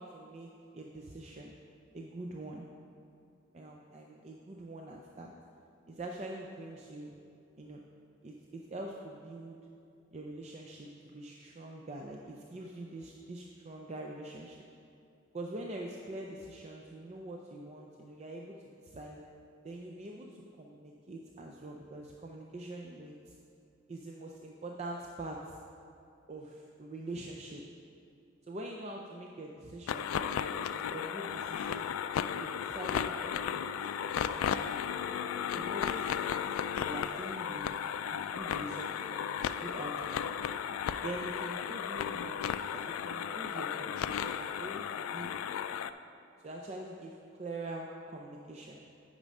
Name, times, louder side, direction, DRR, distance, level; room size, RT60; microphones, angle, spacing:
voice 1, 0.0-1.5 1.9-2.7 3.5-5.3 5.9-7.1 7.6-7.8 8.2-9.6 10.1-14.7 15.3-18.6 18.8-19.2 19.6-23.4 23.9-25.6 26.3-27.6 28.4-31.9 32.4-34.8 35.5-36.4 36.7-37.8 38.1-40.3 41.0-42.4 42.7-45.3 46.4-48.8, right 2 dB, 30° right, 0 dB, 0.4 m, -44 dB
sound 1, 29.9-45.9, left 8 dB, 90° left, 0.3 m, -35 dB
9.2 x 5.2 x 5.3 m, 2.5 s
head